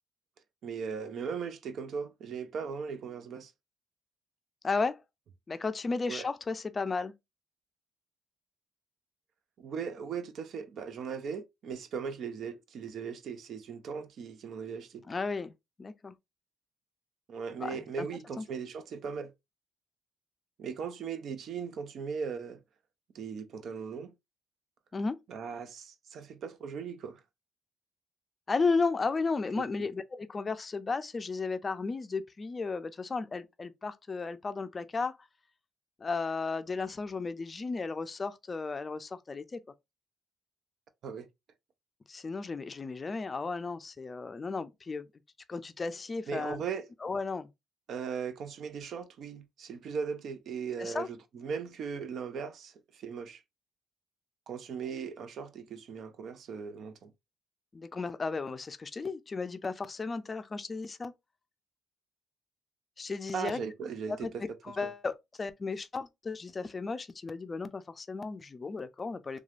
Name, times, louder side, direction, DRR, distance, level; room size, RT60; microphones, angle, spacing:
voice 1, 0.6-3.5 6.1-6.3 9.6-15.0 17.3-19.3 20.6-22.6 23.1-24.1 25.3-27.2 29.6-29.9 41.0-41.3 46.3-46.8 47.9-53.4 54.5-57.1 63.3-64.4, right 6 dB, 70° right, 0.5 m, -38 dB
voice 2, 4.6-5.0 5.5-7.1 15.1-16.2 17.6-18.1 18.4-18.5 24.9-25.2 28.5-35.2 36.0-39.6 42.1-45.1 45.5-46.6 47.0-47.5 50.8-51.1 57.7-61.1 63.0-63.6 64.1-69.4, left 4 dB, 30° left, 0.4 m, -34 dB
3.1 x 2.3 x 2.4 m
cardioid pair, 90°, 0 cm